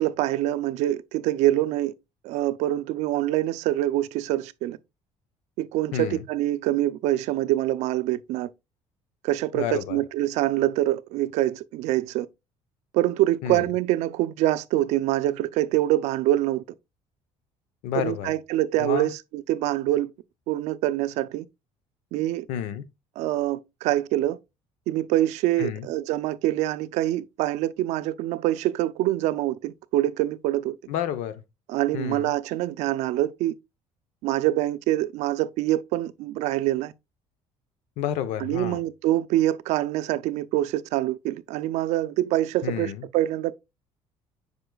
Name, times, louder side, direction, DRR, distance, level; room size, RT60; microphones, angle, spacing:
voice 1, 0.0-1.9 2.2-4.8 5.6-8.5 9.2-12.3 12.9-16.6 18.0-20.1 20.5-21.5 22.1-22.5 23.2-24.4 24.9-30.8 31.7-33.5 34.2-36.9 38.4-43.5, right 15 dB, 70° right, 0.5 m, -25 dB
voice 2, 5.9-6.2 9.5-10.0 13.4-13.7 17.8-18.3 18.8-19.1 22.5-22.8 25.6-25.9 30.9-31.4 31.9-32.3 38.0-38.8 42.6-43.1, left 10 dB, 80° left, 0.8 m, -30 dB
7.9 x 5.3 x 2.3 m
cardioid pair, 170°, 12 cm